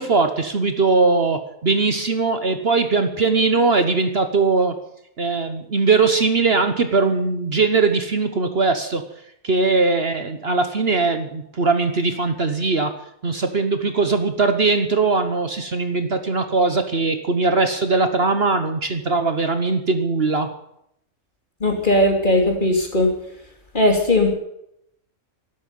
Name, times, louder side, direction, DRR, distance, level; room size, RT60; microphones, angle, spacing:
voice 1, 0.0-4.8 5.2-9.0 9.4-12.9 13.2-20.5, right 3 dB, 50° right, 8 dB, 1.3 m, -20 dB
voice 2, 21.6-23.1 23.7-24.3, left 1 dB, 35° left, 3 dB, 3.1 m, -18 dB
12.5 x 12.5 x 9.2 m, 0.75 s
omnidirectional pair, 1.4 m